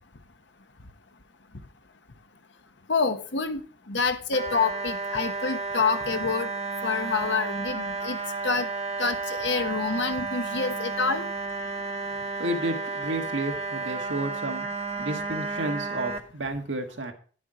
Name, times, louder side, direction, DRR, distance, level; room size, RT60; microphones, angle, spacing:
voice 1, 2.9-6.5 6.8-8.2 8.4-8.7 9.0-11.2, left 4 dB, 70° left, 8 dB, 1.1 m, -27 dB
sound 1, 4.3-16.2, right 3 dB, 35° right, 1.1 m, -32 dB
voice 2, 12.4-14.7 15.0-17.1, right 1 dB, 90° right, 4 dB, 1.6 m, -31 dB
10.0 x 7.1 x 4.9 m, 0.42 s
head